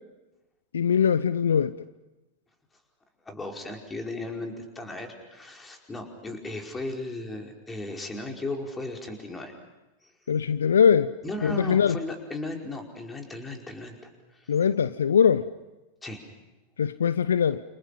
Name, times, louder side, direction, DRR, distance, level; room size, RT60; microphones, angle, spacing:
voice 1, 0.7-1.8 10.3-11.1 11.4-12.0 14.5-15.5 16.8-17.6, left 7 dB, 65° left, 0.8 m, -22 dB
voice 2, 3.2-9.5 10.0-10.1 11.2-14.0 14.3-14.5 16.0-16.2, left 2 dB, 15° left, 4.9 m, -36 dB
29.0 x 29.0 x 5.8 m
figure-of-eight pair, 90°, 0 cm